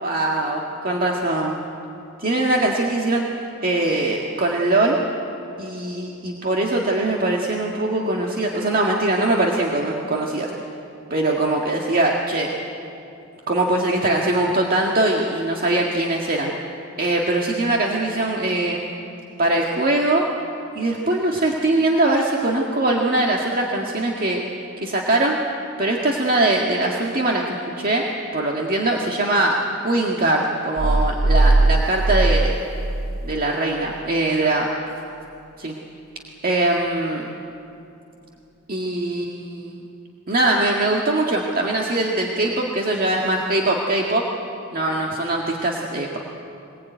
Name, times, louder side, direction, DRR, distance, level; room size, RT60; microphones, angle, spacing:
voice 1, 0.0-1.6 2.2-3.2 3.6-5.0 5.6-10.5 11.1-12.5 13.5-16.5 17.0-18.8 19.4-20.2 20.8-24.4 24.8-25.4 25.8-28.1 28.3-29.6 29.8-32.5 33.2-34.7 35.6-35.7 36.4-37.3 38.7-39.8 40.3-44.2 44.7-46.2, right 2 dB, 45° right, -1 dB, 1.9 m, -21 dB
sound 1, 30.8-33.3 33.7-33.8, right 2 dB, 65° right, 1.1 m, -19 dB
23.0 x 20.5 x 9.3 m, 2.7 s
head